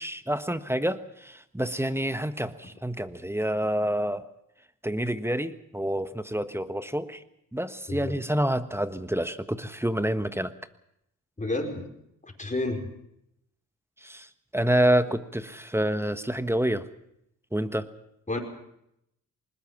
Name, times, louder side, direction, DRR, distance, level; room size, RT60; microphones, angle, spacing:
voice 1, 0.0-4.3 4.8-7.2 7.5-10.5 14.0-16.9 17.5-17.9, right 1 dB, 5° right, 12 dB, 1.3 m, -28 dB
voice 2, 11.4-11.9 12.2-12.9 18.3-18.4, left 2 dB, 20° left, 3 dB, 4.8 m, -30 dB
20.5 x 20.0 x 7.3 m, 0.78 s
cardioid pair, 60°, 35 cm